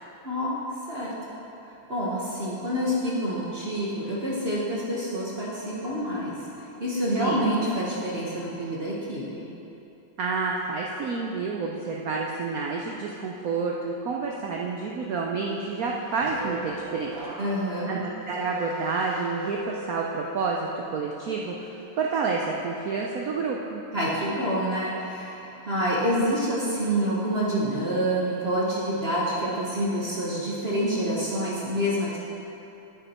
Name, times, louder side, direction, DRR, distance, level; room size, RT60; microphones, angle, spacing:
voice 1, 1.9-9.5 17.4-18.0 23.9-32.2, equal, 35° right, -6 dB, 1.1 m, -27 dB
voice 2, 7.2-7.5 10.2-17.2 17.9-23.8, right 4 dB, 90° right, -1 dB, 0.7 m, -29 dB
sound 1, 15.8-20.9 21.3-21.7, right 2 dB, 70° right, 2.2 m, -40 dB
8.9 x 8.4 x 4.3 m, 3.0 s
omnidirectional pair, 2.3 m